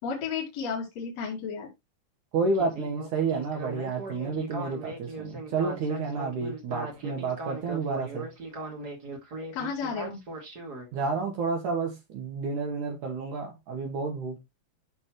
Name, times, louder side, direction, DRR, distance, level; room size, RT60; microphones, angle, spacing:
voice 1, 0.0-1.7 9.5-10.2, left 6 dB, 50° left, 3.1 m, -32 dB
voice 2, 2.3-8.3 10.9-14.4, right 4 dB, 65° right, 2.5 m, -30 dB
Speech synthesizer, 2.5-10.9, right 2 dB, 30° right, 2.2 m, -39 dB
12.0 x 4.1 x 3.0 m
omnidirectional pair, 4.2 m